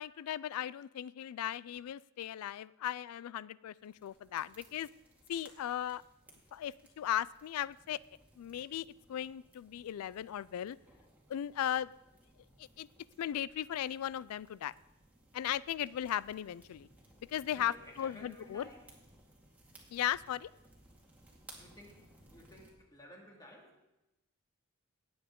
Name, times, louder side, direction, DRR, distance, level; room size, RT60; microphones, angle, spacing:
voice 1, 0.0-4.9 5.3-6.0 6.5-8.0 8.4-10.8 11.3-11.9 12.6-12.9 13.2-14.7 15.3-16.9 17.3-18.7 19.9-20.5, left 11 dB, 75° left, 18 dB, 0.3 m, -37 dB
fire in the wind, 3.8-22.7, right 1 dB, 5° right, 2.1 m, -62 dB
voice 2, 17.5-18.8 21.5-22.0 22.3-23.8, left 1 dB, 20° left, -1 dB, 2.2 m, -54 dB
18.5 x 7.9 x 3.7 m, 0.97 s
head